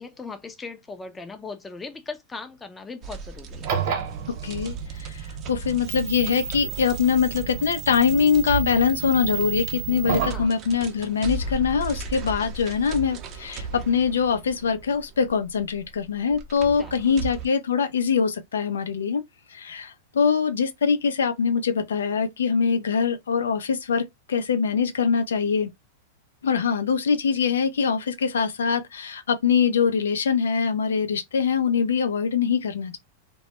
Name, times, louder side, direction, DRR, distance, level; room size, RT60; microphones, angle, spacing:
voice 1, 0.0-3.7 10.3-10.5 16.8-17.2, left 4 dB, 15° left, 0.4 m, -39 dB
sound 1, 3.0-17.5, right 4 dB, 40° right, 0.5 m, -37 dB
sound 2, 3.5-10.4, right 8 dB, 55° right, 0.9 m, -31 dB
voice 2, 4.3-19.2 19.5-25.7 26.4-33.0, left 6 dB, 90° left, 0.4 m, -23 dB
2.1 x 2.0 x 2.8 m
hypercardioid pair, 120°, 0 cm